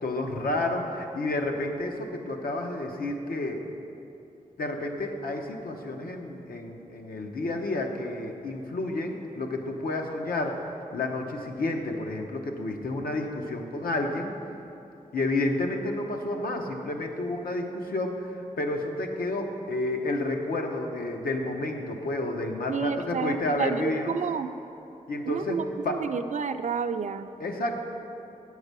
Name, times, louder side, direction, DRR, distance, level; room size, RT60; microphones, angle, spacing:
voice 1, 0.0-3.6 4.6-14.3 15.1-24.1 25.1-25.6 25.8-26.0 27.4-27.8, left 2 dB, 85° left, 3 dB, 0.8 m, -30 dB
voice 2, 22.7-24.5 25.3-27.3, right 6 dB, 55° right, 10 dB, 0.4 m, -30 dB
8.0 x 4.8 x 6.7 m, 2.9 s
wide cardioid pair, 80°, 15 cm